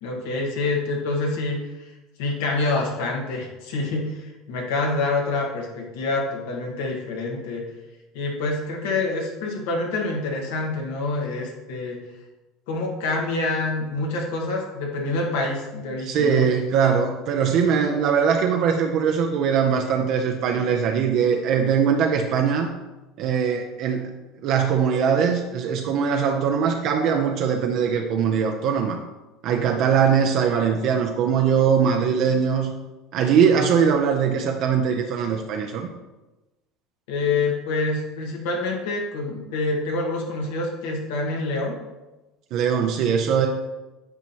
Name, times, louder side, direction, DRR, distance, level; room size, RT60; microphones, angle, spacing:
voice 1, 0.0-1.9 2.2-7.6 8.1-12.0 12.7-16.4 37.1-41.8, left 3 dB, 85° left, 0 dB, 1.5 m, -26 dB
voice 2, 16.0-22.7 23.2-24.2 24.4-29.0 29.4-32.7 33.1-35.9 42.5-43.5, right 7 dB, 60° right, 3 dB, 0.6 m, -21 dB
8.9 x 4.3 x 2.9 m, 1.1 s
supercardioid pair, 100°, 0 cm